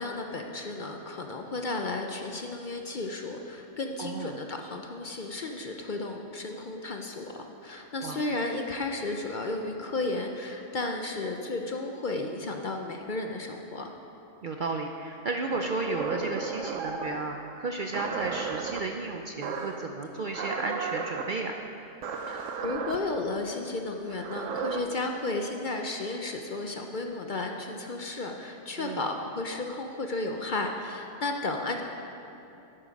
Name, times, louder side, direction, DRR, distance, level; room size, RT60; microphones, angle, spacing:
voice 1, 0.0-13.9 22.3-31.8, left 2 dB, 50° left, 3 dB, 0.7 m, -33 dB
voice 2, 4.0-4.3 8.0-8.2 14.4-21.6 28.8-29.1, right 3 dB, 55° right, 3 dB, 0.5 m, -33 dB
sound 1, 15.5-17.2 17.9-18.8 19.4-19.8 20.3-21.3 22.0-23.0 24.0-24.8, right 5 dB, 75° right, 1.1 m, -34 dB
11.0 x 8.6 x 5.2 m, 2.9 s
omnidirectional pair, 1.3 m